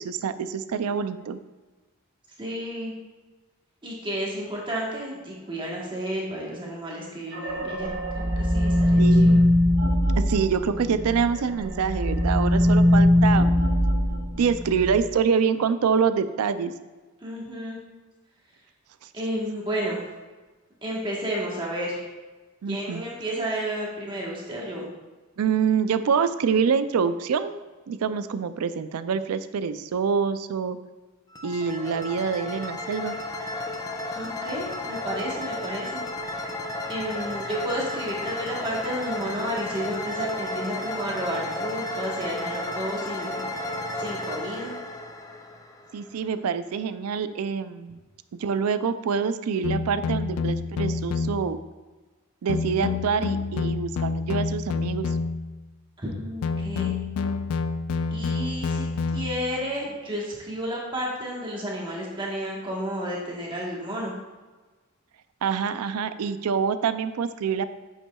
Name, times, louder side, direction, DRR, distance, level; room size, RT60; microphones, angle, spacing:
voice 1, 0.0-1.4 9.0-9.4 10.2-13.5 14.3-16.7 22.6-23.0 25.4-27.6 27.9-30.8 31.4-33.2 45.9-48.0 48.3-51.6 52.4-55.2 65.4-67.6, right 6 dB, 90° right, 12 dB, 0.4 m, -26 dB
voice 2, 2.4-2.9 3.8-9.3 17.2-17.8 19.1-20.0 20.8-22.0 22.7-24.9 34.1-36.0 36.9-43.4 44.0-44.7 56.0-56.9 58.1-58.9 59.1-64.1, equal, 20° right, -4 dB, 1.2 m, -32 dB
sound 1, 7.3-11.2 11.6-15.0, left 1 dB, 50° right, 1.0 m, -21 dB
sound 2, 31.3-46.1, left 2 dB, 15° left, 0.4 m, -33 dB
sound 3, 49.6-51.5 52.5-55.6 56.4-59.6, left 4 dB, 90° left, 0.3 m, -28 dB
8.3 x 5.6 x 2.3 m, 1.3 s
head